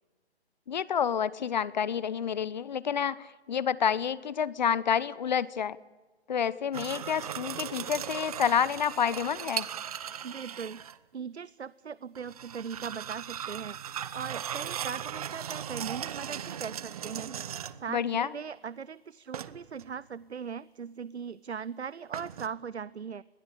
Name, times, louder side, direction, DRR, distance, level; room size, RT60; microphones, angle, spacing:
voice 1, 0.7-5.8 6.3-9.7 17.9-18.3, left 8 dB, 45° left, 20 dB, 0.9 m, -29 dB
sound 1, 6.7-11.0 12.2-17.9 19.3-19.9 22.1-22.5, right 9 dB, 35° right, 1.0 m, -38 dB
voice 2, 10.2-10.8 11.1-17.4 17.8-23.2, right 6 dB, 85° right, 20 dB, 0.8 m, -39 dB
28.0 x 21.5 x 8.4 m, 1.2 s
figure-of-eight pair, 150°, 32 cm